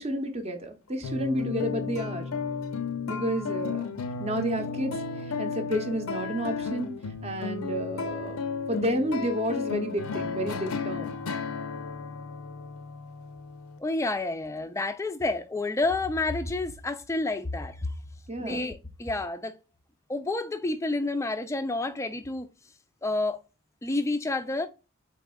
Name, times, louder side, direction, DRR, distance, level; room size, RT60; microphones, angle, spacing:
voice 1, 0.0-2.3 3.1-3.9 4.2-5.0 5.4-6.9 7.2-8.4 8.7-11.1 18.3-18.6, equal, 30° right, 0.7 m, -31 dB
sound 1, 1.0-13.8, left 4 dB, 75° left, 0.5 m, -33 dB
voice 2, 13.8-17.9 18.4-19.5 20.1-22.5 23.0-23.4 23.8-24.7, left 2 dB, 15° left, 0.3 m, -29 dB
4.1 x 3.6 x 2.2 m
head